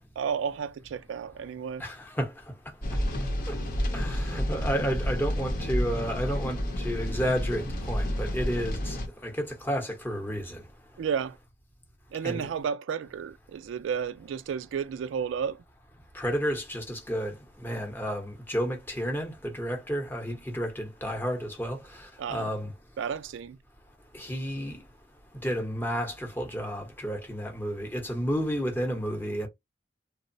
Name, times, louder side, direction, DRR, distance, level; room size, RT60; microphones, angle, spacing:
voice 1, 0.0-1.9 11.0-11.4 12.1-15.6 22.2-22.5 23.0-23.6, right 7 dB, 85° right, 0.3 m, -32 dB
voice 2, 1.8-2.3 3.5-3.6 3.9-9.0 9.2-10.6 12.2-12.5 16.1-17.3 17.6-21.8 22.3-22.7 24.1-24.8 25.4-29.5, equal, 10° left, 0.7 m, -31 dB
sound 1, 2.8-9.1, equal, 50° left, 0.7 m, -30 dB
3.0 x 2.0 x 2.5 m
head